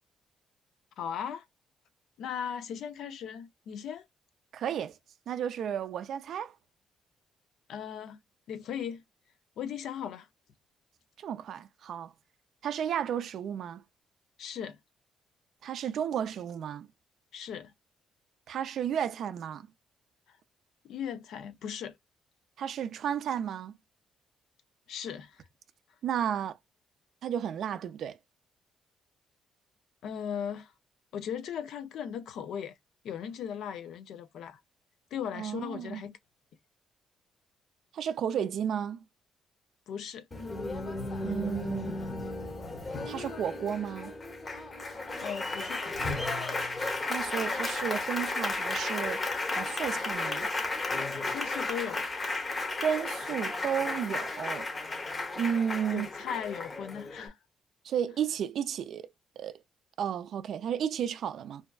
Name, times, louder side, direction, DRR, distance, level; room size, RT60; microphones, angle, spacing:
voice 1, 1.0-1.4 2.2-4.1 7.7-8.2 8.5-9.0 9.6-10.3 14.4-14.8 17.3-17.7 20.3-20.4 20.8-22.0 24.9-25.4 30.0-30.7 31.1-32.8 33.0-34.6 35.1-36.2 39.9-40.3 45.2-46.1 51.3-52.1 55.9-57.4, left 8 dB, 75° left, 0.4 m, -38 dB
voice 2, 4.5-5.0 5.3-6.5 11.2-12.1 12.6-13.8 15.6-16.9 18.5-19.7 22.6-23.7 26.0-26.6 27.2-28.2 35.3-36.0 37.9-39.0 41.2-41.9 43.1-44.1 47.1-49.2 49.6-50.5 52.7-54.7 55.4-56.1 57.8-59.1 59.4-59.6 60.0-61.6, right 8 dB, 70° right, 0.3 m, -33 dB
Applause, 40.3-57.3, left 2 dB, 30° left, 0.7 m, -34 dB
2.6 x 2.2 x 2.3 m
cardioid pair, 90°, 0 cm